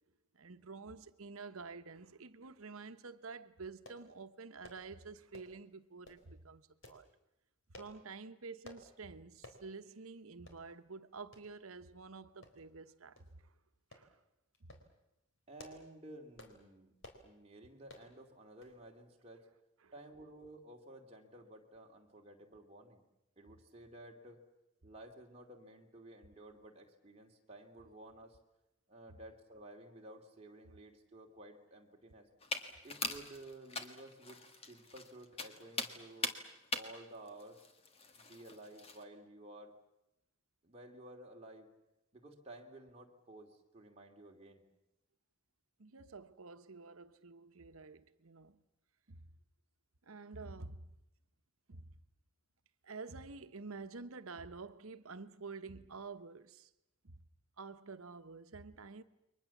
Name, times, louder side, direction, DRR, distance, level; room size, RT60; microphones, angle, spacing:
voice 1, 0.3-7.1 7.7-13.5 13.9-14.2 14.6-14.7 19.8-19.9 45.8-48.6 49.1-49.3 50.0-50.9 51.7-51.9 52.8-56.7 57.0-57.2 57.6-59.0, right 4 dB, 85° right, 1.1 m, -49 dB
sound 1, 3.9-4.1 4.6-4.9 5.3-5.6 6.0-6.3 6.8-7.0 7.7-8.0 8.6-8.9 9.4-9.6 10.0-10.1 10.5-10.6 11.3-11.5 12.4-12.8 13.2-13.3 13.9-14.1 14.5-14.9 15.4-15.9 16.4-16.6 17.0-17.3 17.9-18.1 18.6-18.8 19.1-19.2, left 1 dB, 65° left, 4.0 m, -55 dB
voice 2, 15.5-16.9 17.2-19.4 19.9-23.0 23.4-24.4 24.8-28.4 28.9-32.3 32.8-36.3 36.7-37.6 38.2-39.7 40.6-41.7 42.1-44.6, right 1 dB, 30° right, 2.8 m, -54 dB
sound 2, 32.4-39.0, left 3 dB, 30° left, 1.7 m, -42 dB
29.5 x 23.0 x 7.3 m
head